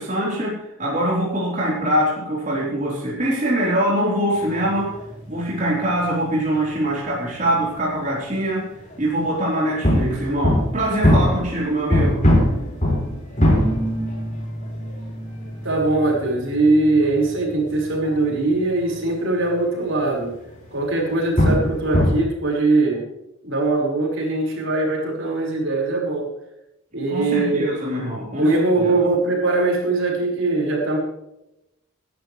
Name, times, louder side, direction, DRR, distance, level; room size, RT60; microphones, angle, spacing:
voice 1, 0.0-4.9 5.3-8.7 9.0-12.2 27.1-28.9, right 1 dB, 35° right, -5 dB, 4.1 m, -23 dB
sound 1, 4.3-7.6 7.8-8.4 8.7-9.2 9.8-19.5 19.8-20.1 20.5-20.6 21.0-22.2, left 1 dB, 35° left, 5.3 m, -23 dB
voice 2, 15.6-20.3 20.7-23.0 23.4-26.3 26.9-27.7 28.4-31.0, right 2 dB, 65° right, -1 dB, 5.1 m, -21 dB
19.5 x 12.0 x 3.3 m, 0.87 s
head